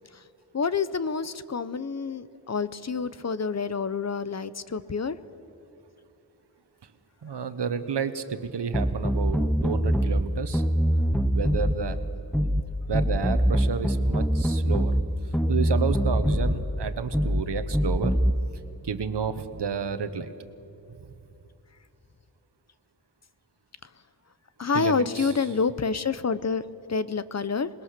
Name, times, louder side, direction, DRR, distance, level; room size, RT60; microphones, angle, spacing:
voice 1, 0.5-5.2 24.6-26.6 26.9-27.7, left 5 dB, 40° left, 15 dB, 0.8 m, -28 dB
voice 2, 7.2-10.6 11.3-12.0 12.9-14.9 15.5-18.1 18.4-20.3 24.7-25.3, right 6 dB, 90° right, 10 dB, 1.3 m, -31 dB
sound 1, 8.7-10.3 10.5-11.8 12.3-12.7 12.9-15.1 15.3-16.6 17.1-17.5 17.7-18.3, equal, ahead, 0.7 m, -23 dB
27.0 x 21.0 x 6.7 m, 2.8 s
wide cardioid pair, 115°, 40 cm